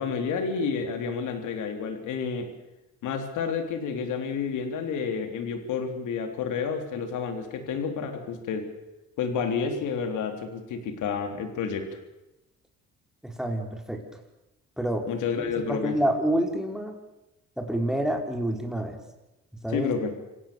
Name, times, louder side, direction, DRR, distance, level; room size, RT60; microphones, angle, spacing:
voice 1, 0.0-2.5 3.0-8.6 9.2-11.9 15.1-16.0 19.7-20.2, left 6 dB, 85° left, 6 dB, 3.6 m, -30 dB
voice 2, 13.2-14.0 14.8-15.1 15.4-17.0 17.6-19.0 19.6-19.9, right 1 dB, ahead, 3 dB, 4.6 m, -28 dB
27.0 x 16.5 x 7.0 m, 0.95 s
cardioid pair, 90°, 30 cm